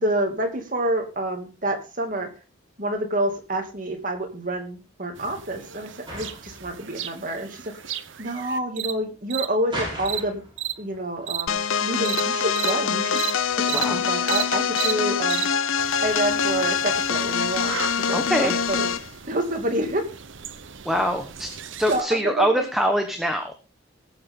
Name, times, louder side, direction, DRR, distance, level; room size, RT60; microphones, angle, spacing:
voice 1, 0.0-2.3 2.8-7.6 8.2-10.4 10.8-13.2 13.6-15.5 16.0-17.8 18.1-18.9 19.3-20.0 21.9-22.6, right 1 dB, 40° right, 4 dB, 2.5 m, -28 dB
sound 1, 3.2-15.0, right 1 dB, 20° right, 7.7 m, -42 dB
sound 2, 5.2-8.9 9.3-9.5 10.1-10.2 10.6-10.7 11.3-11.4 12.1-12.2 12.6-12.7 13.2-13.3 13.7-13.9 14.3-14.4 14.8-14.9 15.3-15.5 15.8-22.0, right 11 dB, 65° right, 0.9 m, -34 dB
sound 3, 11.5-19.1, left 6 dB, 80° left, 0.7 m, -24 dB
voice 2, 13.7-14.0 18.1-18.5 20.8-21.5 21.8-23.5, equal, ahead, 4 dB, 1.2 m, -24 dB
19.5 x 8.0 x 3.7 m, 0.32 s
head